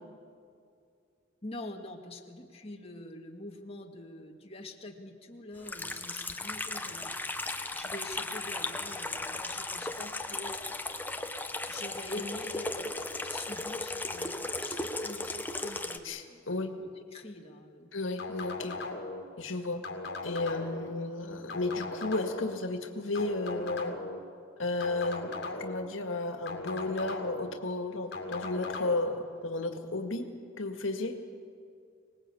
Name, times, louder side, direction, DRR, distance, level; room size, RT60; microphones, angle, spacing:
voice 1, 1.4-7.1 7.7-10.6 11.7-16.4 16.8-17.9, left 2 dB, 30° left, 1 dB, 2.0 m, -45 dB
Water tap faucet / Sink (filling or washing), 5.6-16.0, left 2 dB, 10° left, 1.0 m, -36 dB
voice 2, 16.0-16.7 17.9-18.8 19.4-19.8 20.2-24.0 24.6-30.3 30.6-31.2, left 2 dB, 90° left, 5 dB, 2.0 m, -33 dB
sound 1, 18.2-19.2 19.8-20.9 21.5-22.5 23.1-24.2 24.8-25.9 26.5-27.5 28.1-29.0, left 3 dB, 60° left, 2.5 m, -38 dB
24.5 x 20.0 x 8.6 m, 2.4 s
head